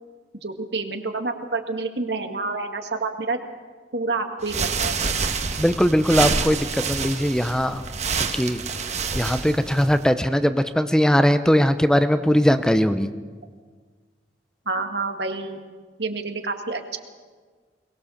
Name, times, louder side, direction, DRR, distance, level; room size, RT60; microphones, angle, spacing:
voice 1, 0.3-3.4 3.9-4.9 14.7-15.6 16.0-17.0, right 3 dB, 70° right, 5 dB, 2.0 m, -28 dB
sound 1, 4.4-10.1, right 5 dB, 40° right, 1.4 m, -27 dB
voice 2, 5.6-7.8 8.3-8.6 9.1-13.1, equal, 5° left, 10 dB, 0.6 m, -20 dB
22.5 x 20.5 x 7.1 m, 1.5 s
head